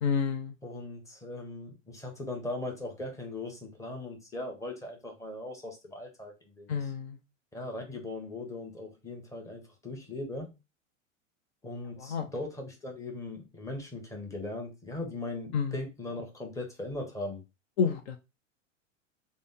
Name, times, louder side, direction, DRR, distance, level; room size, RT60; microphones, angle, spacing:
voice 1, 0.0-0.6 6.7-7.2 12.0-12.3 15.5-15.7 17.8-18.2, left 6 dB, 55° left, 0.6 m, -29 dB
voice 2, 0.6-6.9 7.5-10.6 11.6-17.4, left 2 dB, 10° left, 1.0 m, -39 dB
3.7 x 2.0 x 3.7 m
figure-of-eight pair, 90°, 40 cm